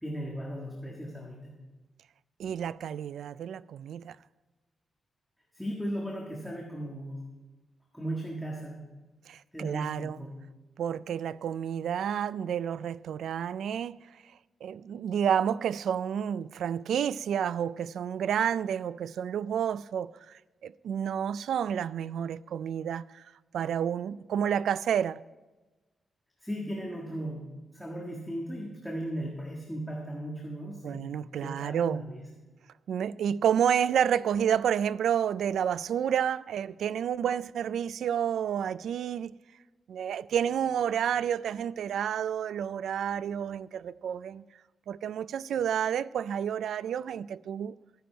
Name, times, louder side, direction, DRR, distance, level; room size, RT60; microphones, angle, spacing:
voice 1, 0.0-1.5 5.5-7.3 7.9-8.9 9.5-10.3 26.4-32.2, right 1 dB, ahead, 1.6 m, -37 dB
voice 2, 2.4-4.2 9.3-10.2 10.8-14.0 14.6-23.2 23.5-25.2 30.8-32.0 32.9-39.3 39.9-44.4 44.9-47.8, right 8 dB, 80° right, 0.3 m, -30 dB
15.0 x 10.5 x 4.5 m
wide cardioid pair, 170°, 0 cm